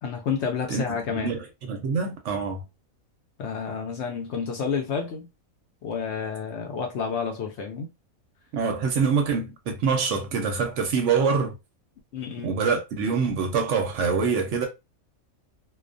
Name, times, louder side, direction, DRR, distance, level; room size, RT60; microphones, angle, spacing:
voice 1, 0.0-1.3 3.4-5.3 5.8-7.9 12.1-12.6, left 6 dB, 65° left, 0.7 m, -30 dB
voice 2, 1.1-2.6 8.5-11.6 12.4-14.7, right 5 dB, 65° right, 0.8 m, -25 dB
2.3 x 2.2 x 2.4 m
omnidirectional pair, 1.4 m